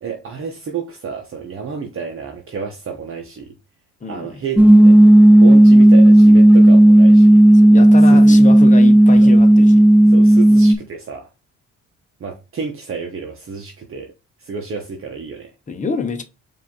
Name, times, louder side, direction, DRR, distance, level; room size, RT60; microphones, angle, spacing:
voice 1, 0.0-3.5 4.1-5.0 5.3-7.4 7.8-8.4 9.2-9.3 10.1-11.3 12.2-14.1 14.4-15.5, right 6 dB, 45° right, 1.1 m, -30 dB
voice 2, 4.0-4.4 7.5-9.8 15.7-16.2, left 4 dB, 25° left, 1.0 m, -26 dB
sound 1, 4.6-10.8, right 1 dB, 5° right, 0.4 m, -9 dB
4.8 x 2.8 x 3.8 m
cardioid pair, 90°, 30 cm